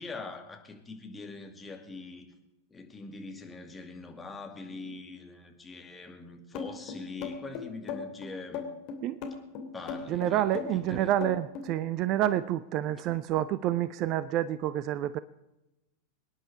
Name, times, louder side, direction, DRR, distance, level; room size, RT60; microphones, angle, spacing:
voice 1, 0.0-2.3 2.7-8.6 9.7-11.1, left 3 dB, 10° left, 3 dB, 2.4 m, -43 dB
sound 1, 6.5-11.7, left 6 dB, 40° left, 2.7 m, -37 dB
voice 2, 10.1-15.2, right 13 dB, 40° right, 17 dB, 0.5 m, -28 dB
25.0 x 10.5 x 4.9 m, 0.97 s
figure-of-eight pair, 90°, 0 cm